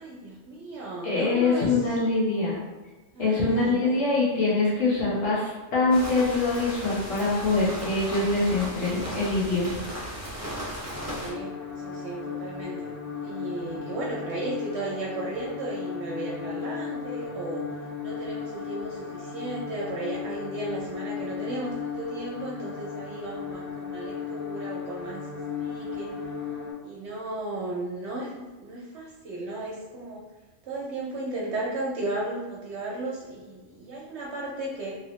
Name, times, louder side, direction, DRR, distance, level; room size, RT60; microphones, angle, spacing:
voice 1, 0.0-1.8 3.1-4.1 11.1-12.9 13.2-17.6 18.0-25.3 25.6-26.2 26.8-30.2 30.6-34.9, right 2 dB, 65° right, -4 dB, 0.8 m, -35 dB
voice 2, 1.0-2.6 3.2-9.7, left 3 dB, 75° left, -6 dB, 1.2 m, -24 dB
sound 1, 5.9-11.3, equal, 20° right, 0.5 m, -36 dB
sound 2, 10.9-26.7, left 6 dB, 15° left, 0.8 m, -36 dB
2.9 x 2.7 x 3.0 m, 1.2 s
omnidirectional pair, 1.3 m